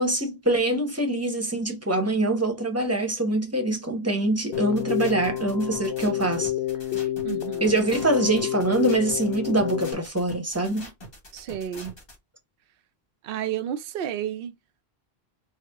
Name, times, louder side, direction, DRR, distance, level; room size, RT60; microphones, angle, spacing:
voice 1, 0.0-6.5 7.6-10.9, right 2 dB, 15° right, 0.9 m, -24 dB
Keyboard (musical), 4.5-9.9, left 13 dB, 85° left, 0.8 m, -29 dB
sound 1, 4.5-12.2, equal, 65° left, 1.9 m, -44 dB
voice 2, 7.2-7.9 11.3-11.9 13.2-14.5, right 10 dB, 65° right, 0.7 m, -31 dB
4.5 x 2.1 x 3.4 m
omnidirectional pair, 1.1 m